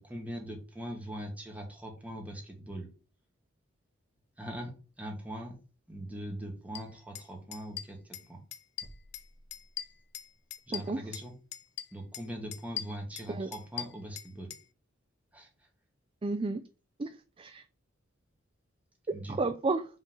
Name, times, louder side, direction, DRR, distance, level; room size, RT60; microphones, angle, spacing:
voice 1, 0.0-2.9 4.4-5.6 5.9-8.4 10.7-11.3 11.9-14.5 15.3-15.5 19.1-19.4, equal, 10° right, 0 dB, 1.8 m, -41 dB
sound 1, 6.7-6.8 7.1-7.3 7.5-8.3 8.5-9.2 9.5-11.3 11.5-12.2 12.5-14.6, left 10 dB, 60° left, 0.5 m, -40 dB
sound 2, 8.8-10.4, right 1 dB, 50° right, 1.3 m, -56 dB
voice 2, 10.7-11.0 13.3-13.5 16.2-16.6 17.0-17.6 19.3-19.9, right 3 dB, 25° right, 9 dB, 0.4 m, -32 dB
5.5 x 3.6 x 5.4 m, 0.35 s
head